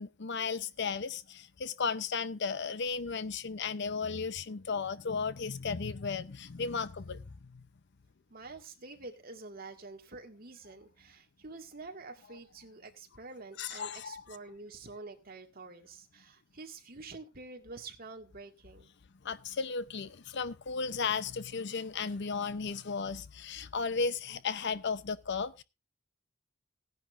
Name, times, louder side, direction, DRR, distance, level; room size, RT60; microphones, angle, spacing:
voice 1, 0.0-7.6 13.6-14.2 19.2-25.6, left 5 dB, 60° left, 0.7 m, -35 dB
voice 2, 8.3-18.9, right 3 dB, 45° right, 2.0 m, -47 dB
17.5 x 10.5 x 2.6 m
head